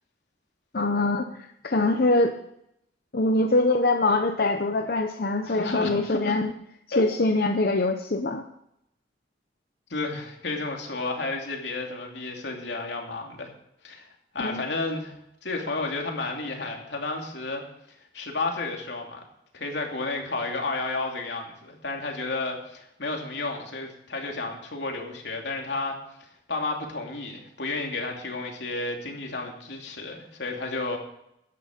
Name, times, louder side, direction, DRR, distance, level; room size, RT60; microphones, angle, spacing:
voice 1, 0.7-2.3 3.1-6.5 7.0-8.4 14.4-14.6, left 2 dB, 55° left, 6 dB, 0.8 m, -23 dB
voice 2, 5.4-6.4 6.9-7.0 9.9-13.5 13.8-14.1 14.3-15.2 15.4-19.2 19.5-31.0, left 3 dB, 80° left, 1 dB, 2.8 m, -32 dB
14.0 x 10.0 x 5.1 m, 0.78 s
head